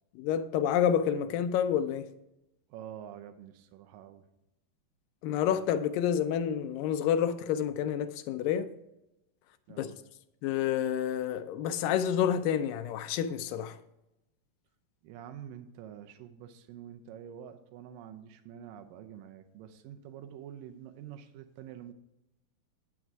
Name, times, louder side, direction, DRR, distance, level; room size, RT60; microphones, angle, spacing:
voice 1, 0.2-2.1 5.2-8.7 9.8-9.9 10.4-13.8, left 9 dB, 80° left, 2.2 m, -29 dB
voice 2, 2.7-4.3 9.7-10.0 15.0-21.9, right 9 dB, 80° right, 2.2 m, -47 dB
9.8 x 6.1 x 4.6 m
omnidirectional pair, 4.2 m